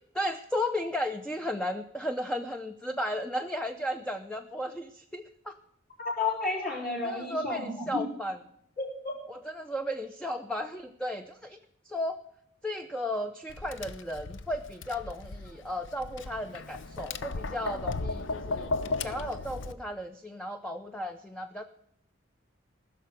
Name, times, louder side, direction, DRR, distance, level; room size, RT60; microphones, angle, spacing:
voice 1, 0.1-5.6 7.0-8.4 9.3-11.6 11.8-12.2 12.6-18.7 19.0-21.6, left 1 dB, 5° left, 6 dB, 0.5 m, -34 dB
voice 2, 6.0-8.0 8.8-9.1, left 3 dB, 50° left, -3 dB, 4.3 m, -32 dB
Tap, 13.5-19.7, left 3 dB, 65° left, 0.7 m, -36 dB
15.5 x 6.7 x 7.7 m, 0.72 s
head